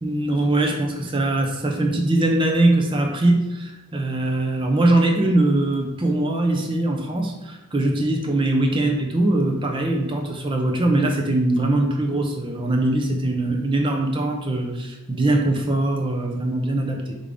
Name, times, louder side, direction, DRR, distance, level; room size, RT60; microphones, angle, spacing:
voice 1, 0.0-17.1, right 2 dB, 25° right, 2 dB, 0.5 m, -21 dB
3.5 x 3.4 x 3.7 m, 1.0 s
head